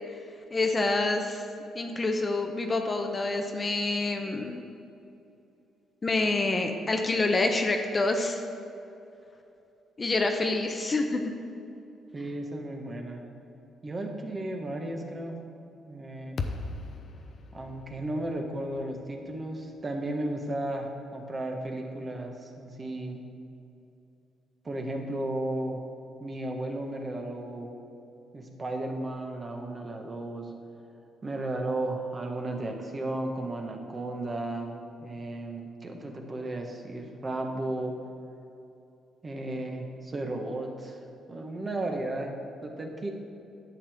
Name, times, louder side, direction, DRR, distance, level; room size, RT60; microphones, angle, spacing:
voice 1, 0.5-1.4 1.7-4.6 6.0-8.4 10.0-11.2, left 2 dB, 30° left, 4 dB, 0.7 m, -27 dB
voice 2, 12.1-13.2 13.8-15.4 15.9-16.4 17.5-23.2 24.6-25.8 26.2-27.7 28.3-30.5 31.2-37.9 39.2-41.0 41.3-43.1, right 1 dB, 30° right, 2 dB, 1.3 m, -34 dB
sound 1, 16.4-20.7, left 3 dB, 55° left, 0.7 m, -40 dB
10.5 x 7.3 x 3.6 m, 2.8 s
cardioid pair, 90°, 0 cm